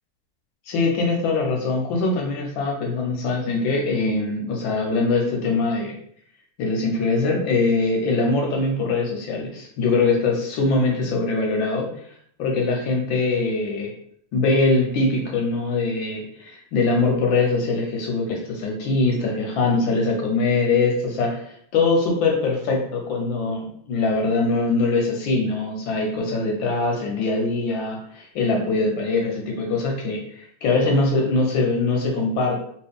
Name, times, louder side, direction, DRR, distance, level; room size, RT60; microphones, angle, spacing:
voice 1, 0.7-5.9 6.6-11.9 12.4-13.9 14.3-32.6, left 3 dB, 70° left, 1 dB, 1.3 m, -22 dB
3.1 x 2.9 x 3.4 m, 0.66 s
omnidirectional pair, 2.4 m